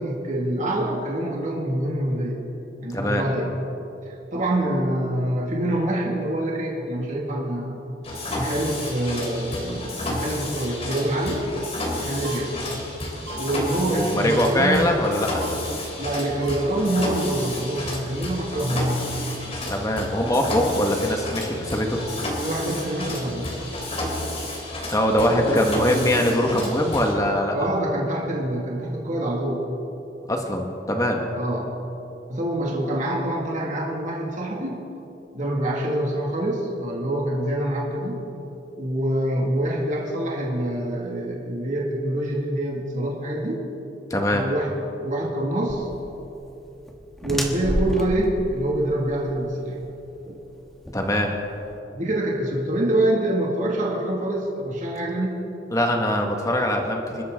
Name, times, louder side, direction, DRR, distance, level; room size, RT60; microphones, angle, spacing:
voice 1, 0.0-2.4 2.8-3.5 4.1-7.9 8.3-11.5 12.0-12.5 13.4-14.9 16.0-19.2 22.4-23.6 25.3-25.7 27.5-29.7 31.3-31.8 32.3-34.8 35.3-38.2 38.8-43.6 44.3-44.7 45.0-45.9 47.2-49.8 50.2-50.4 51.9-55.4, right 1 dB, 45° right, -2 dB, 2.3 m, -26 dB
voice 2, 2.9-3.2 13.9-15.4 19.7-22.1 24.9-27.7 30.3-31.2 44.1-44.4 50.9-51.3 55.7-57.2, left 1 dB, 20° left, 2 dB, 1.8 m, -22 dB
Mechanisms, 8.0-27.1, left 1 dB, 35° left, 3.0 m, -31 dB
sound 1, 12.2-12.4 13.3-13.4 14.3-14.4 15.4-15.5 16.4-16.6 17.4-17.5, right 7 dB, 65° right, 1.6 m, -39 dB
sound 2, 45.7-51.8, equal, ahead, 1.6 m, -32 dB
27.5 x 13.0 x 3.9 m, 3.0 s
head